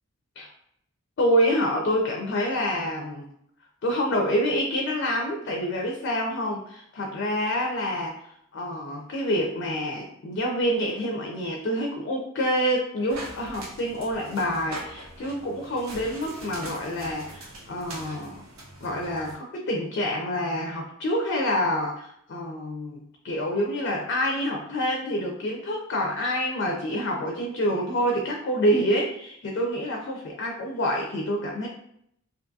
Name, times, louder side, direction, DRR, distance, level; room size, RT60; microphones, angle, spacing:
voice 1, 1.2-3.3 3.8-8.2 8.5-18.4 18.8-31.7, equal, 55° left, 1 dB, 0.4 m, -27 dB
sound 1, 13.1-19.3, right 1 dB, 85° right, 0.7 m, -42 dB
2.6 x 2.3 x 2.6 m, 0.73 s
head